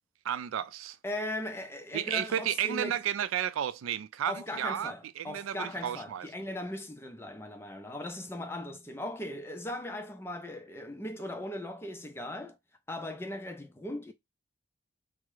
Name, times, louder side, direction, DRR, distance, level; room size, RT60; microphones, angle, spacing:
voice 1, 0.2-1.0 1.9-6.3, right 10 dB, 85° right, 0.3 m, -32 dB
voice 2, 1.0-3.0 4.3-12.6 12.9-14.1, left 1 dB, 10° left, 0.3 m, -38 dB
3.4 x 2.0 x 3.0 m
head